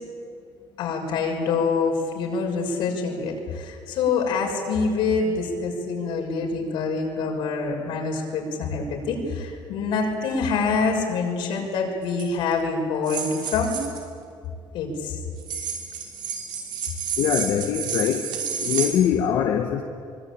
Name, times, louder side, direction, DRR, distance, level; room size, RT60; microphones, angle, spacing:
voice 1, 0.8-13.8 14.7-15.2, left 4 dB, 90° left, 1 dB, 6.5 m, -26 dB
sound 1, 12.1-12.2 13.1-14.0 15.4-18.9, right 7 dB, 65° right, 5.6 m, -30 dB
voice 2, 17.2-18.3 18.6-19.8, left 9 dB, 70° left, 3 dB, 1.5 m, -23 dB
24.5 x 24.5 x 9.0 m, 2.3 s
cardioid pair, 170°, 8 cm